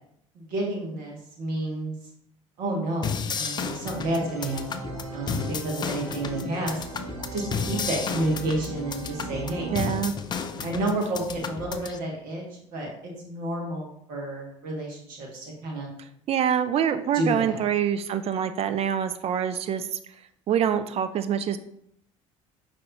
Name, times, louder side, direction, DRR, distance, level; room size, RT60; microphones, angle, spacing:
voice 1, 0.3-1.9 2.6-4.8 5.1-6.8 7.3-9.7 10.6-12.4 12.7-15.9 17.1-17.6, right 1 dB, 55° right, -1 dB, 1.5 m, -30 dB
sound 1, 3.0-12.0, left 6 dB, 25° left, 0.4 m, -33 dB
sound 2, 3.8-10.0, right 4 dB, 80° right, 0.8 m, -39 dB
voice 2, 9.7-10.1 16.3-20.0 20.5-21.6, right 9 dB, 35° right, 10 dB, 0.4 m, -25 dB
5.2 x 3.2 x 2.8 m, 0.71 s
figure-of-eight pair, 60°, 17 cm